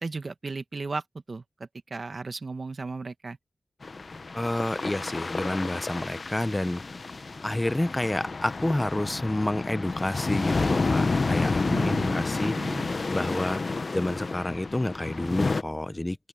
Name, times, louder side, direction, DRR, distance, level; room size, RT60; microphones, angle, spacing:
voice 1, 0.0-1.0 1.3-1.4 1.9-3.4 11.7-13.0, right 3 dB, 55° right, 1.4 m, -35 dB
sound 1, 3.8-15.6, left 3 dB, 55° left, 0.8 m, -30 dB
voice 2, 4.3-6.8 7.4-13.6 13.9-16.3, left 1 dB, 20° left, 0.8 m, -29 dB
open air
cardioid pair, 60°, 0 cm